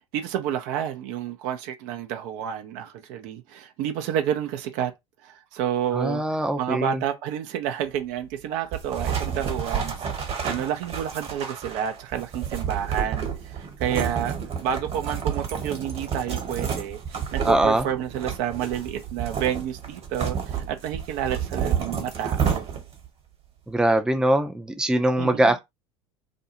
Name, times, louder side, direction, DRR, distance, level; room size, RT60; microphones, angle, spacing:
voice 1, 0.1-4.9 5.2-6.2 6.6-14.3 14.6-22.7 25.2-25.5, right 10 dB, 60° right, 0.6 m, -30 dB
voice 2, 5.9-7.0 17.4-17.9 23.7-25.6, right 1 dB, 5° right, 0.5 m, -22 dB
sound 1, 8.7-23.1, right 7 dB, 40° right, 1.3 m, -30 dB
2.6 x 2.3 x 2.8 m
hypercardioid pair, 80°, 15 cm